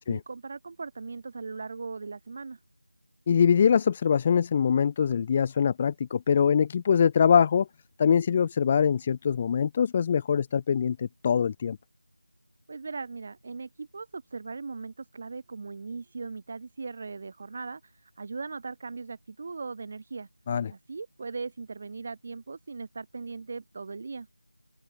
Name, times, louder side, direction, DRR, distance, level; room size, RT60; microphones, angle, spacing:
voice 1, 0.0-2.6 12.7-20.3 20.7-24.3, right 4 dB, 30° right, 2.0 m, -39 dB
voice 2, 3.3-7.7 8.0-11.8 20.5-20.7, left 7 dB, 15° left, 0.3 m, -23 dB
open air
figure-of-eight pair, 175°, 0 cm